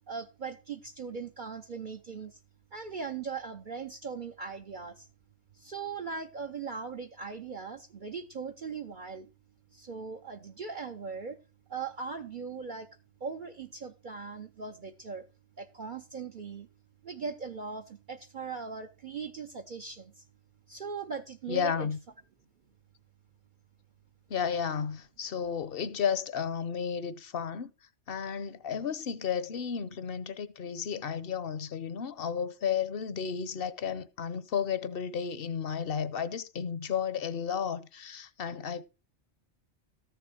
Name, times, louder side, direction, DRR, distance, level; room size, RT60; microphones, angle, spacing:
voice 1, 0.1-2.4 2.7-5.1 5.5-9.3 9.7-11.4 11.7-12.9 13.2-15.3 15.6-16.7 17.0-20.2 20.7-21.9, right 5 dB, 50° right, 0.8 m, -39 dB
voice 2, 21.5-22.0 24.3-27.7 28.1-38.8, left 7 dB, 55° left, 0.9 m, -33 dB
13.5 x 6.9 x 4.9 m
omnidirectional pair, 1.2 m